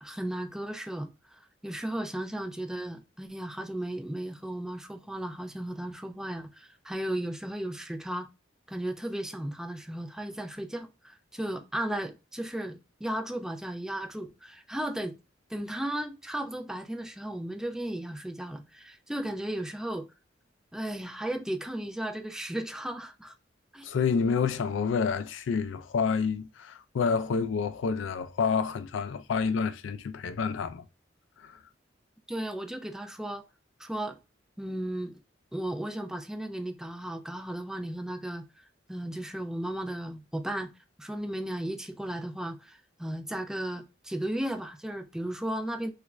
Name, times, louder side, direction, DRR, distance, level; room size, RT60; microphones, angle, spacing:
voice 1, 0.0-8.3 8.7-15.1 15.5-20.1 20.7-23.3 23.7-23.9 32.3-33.4 33.8-34.2 34.6-35.2 35.5-38.4 38.9-40.7 41.0-45.9, right 1 dB, 5° right, 0.3 m, -35 dB
voice 2, 23.8-30.8 31.4-31.6, left 5 dB, 90° left, 0.4 m, -28 dB
3.3 x 2.4 x 3.0 m
head